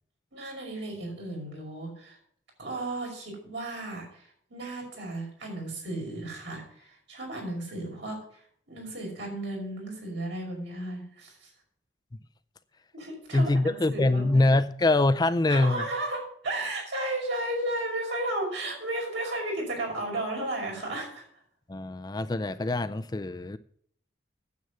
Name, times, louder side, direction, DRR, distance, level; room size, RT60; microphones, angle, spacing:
voice 1, 0.3-2.2 2.6-8.4 8.7-11.5 12.9-14.5 15.5-21.2, right 1 dB, 70° right, -1 dB, 5.5 m, -34 dB
voice 2, 13.3-15.8 21.7-23.6, left 2 dB, 20° left, 10 dB, 0.4 m, -24 dB
9.4 x 8.0 x 6.7 m, 0.64 s
head